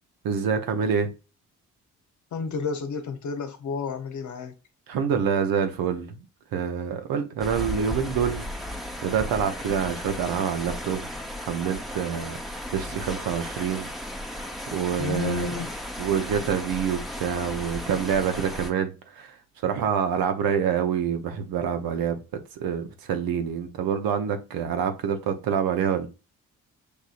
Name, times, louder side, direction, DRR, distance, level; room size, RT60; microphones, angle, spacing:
voice 1, 0.2-1.1 4.9-6.2 6.5-11.1 11.4-12.4 12.7-13.9 14.7-15.5 16.0-19.3 19.6-22.2 22.6-26.1, right 7 dB, 75° right, 0.8 m, -26 dB
voice 2, 2.3-4.6 15.0-15.7, left 5 dB, 55° left, 0.9 m, -31 dB
sound 1, 7.4-18.7, left 1 dB, ahead, 0.8 m, -35 dB
6.6 x 2.7 x 2.5 m
supercardioid pair, 60°, 35 cm